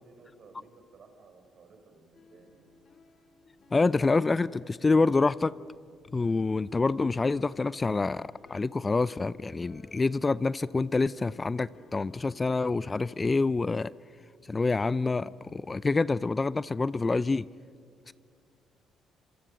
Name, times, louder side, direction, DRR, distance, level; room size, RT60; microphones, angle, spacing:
voice 1, 0.0-2.7, right 3 dB, 55° right, 5 dB, 4.9 m, -56 dB
sound 1, 2.1-13.3, left 4 dB, 50° left, 2.2 m, -56 dB
voice 2, 3.7-5.5 6.1-13.9 14.5-17.5 18.1-18.2, left 3 dB, 30° left, 19 dB, 0.6 m, -27 dB
27.0 x 27.0 x 6.6 m, 2.3 s
hypercardioid pair, 50°, 0 cm